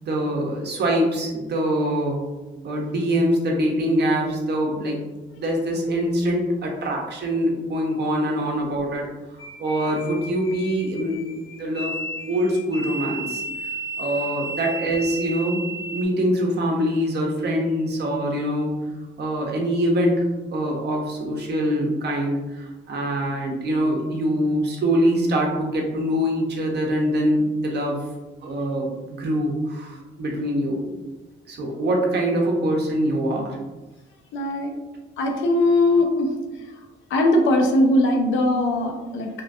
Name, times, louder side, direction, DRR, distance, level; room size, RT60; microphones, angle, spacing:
voice 1, 0.0-2.2 2.6-5.0 5.4-9.0 9.6-12.0 12.3-13.4 14.0-15.6 15.9-18.7 19.2-20.2 20.5-28.0 28.4-30.8 31.5-33.6, equal, 55° right, 0 dB, 0.7 m, -24 dB
sound 1, 9.4-16.0, right 2 dB, 15° left, 0.4 m, -33 dB
voice 2, 34.3-34.7 35.2-36.3 37.1-39.3, left 1 dB, 75° left, 3 dB, 0.6 m, -20 dB
2.8 x 2.3 x 2.6 m, 1.1 s
cardioid pair, 90°, 20 cm